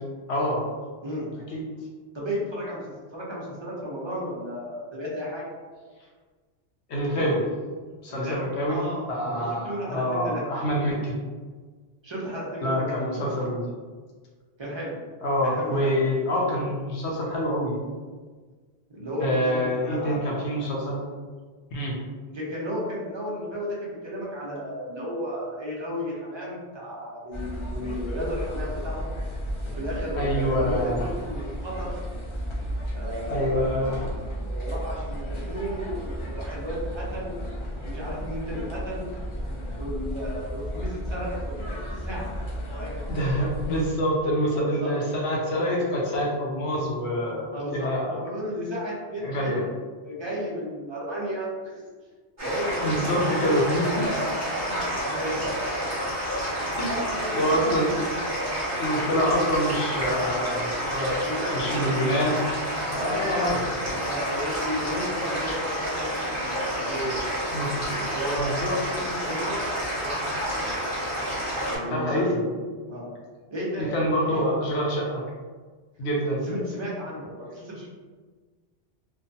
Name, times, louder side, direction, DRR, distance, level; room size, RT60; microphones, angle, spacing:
voice 1, 0.3-0.6 1.5-1.6 6.9-7.5 8.0-8.8 9.1-11.1 12.6-13.6 15.2-17.7 19.2-21.0 21.7-22.0 30.1-31.0 33.3-34.0 43.1-48.2 49.2-49.6 52.8-54.1 56.8-56.9 57.3-58.1 58.8-61.1 61.5-62.4 62.8-63.6 67.5-67.8 68.4-69.0 71.9-72.4 73.8-75.2 76.0-76.4, equal, 80° left, -3 dB, 1.0 m, -26 dB
voice 2, 2.1-2.8 3.1-5.4 8.1-10.4 12.0-13.2 14.6-15.0 15.4-16.0 18.9-20.5 22.3-29.1 29.7-31.9 32.9-33.8 34.5-37.4 37.8-39.1 39.7-43.0 44.5-44.9 47.5-49.5 50.0-51.8 52.4-55.5 56.4-57.6 61.2-62.1 63.0-63.4 63.8-67.2 68.0-68.7 69.0-70.8 71.6-72.5 72.9-73.1 73.5-74.4 76.4-77.9, equal, 35° right, -5 dB, 0.5 m, -33 dB
sound 1, 27.3-43.9, equal, 50° left, 0.3 m, -33 dB
sound 2, 52.4-71.8, equal, 15° right, 1.2 m, -29 dB
2.5 x 2.2 x 2.6 m, 1.5 s
omnidirectional pair, 1.1 m